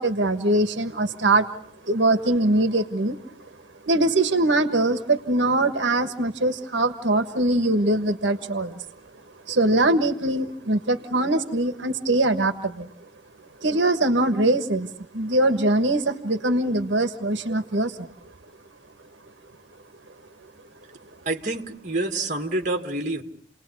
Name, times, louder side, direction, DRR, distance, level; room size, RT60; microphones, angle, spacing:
voice 1, 0.0-1.5 1.8-3.2 3.8-8.8 9.5-12.9 13.6-18.1, right 2 dB, 80° right, 8 dB, 1.5 m, -22 dB
voice 2, 21.3-23.2, right 2 dB, 45° right, 4 dB, 2.3 m, -27 dB
30.0 x 19.5 x 8.4 m, 0.68 s
head